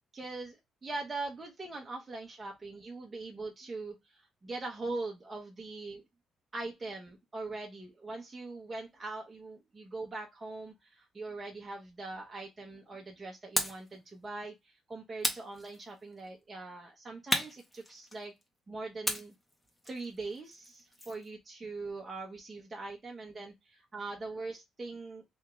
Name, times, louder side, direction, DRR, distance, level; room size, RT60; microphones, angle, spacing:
voice 1, 0.1-6.0 6.5-18.3 18.7-19.3 19.8-25.2, right 3 dB, 25° right, -1 dB, 0.8 m, -42 dB
sound 1, 13.6-13.9 15.2-16.1 17.3-18.4 19.0-21.3, left 1 dB, 10° left, 1.1 m, -35 dB
3.0 x 2.7 x 3.3 m, 0.20 s
cardioid pair, 90°, 0 cm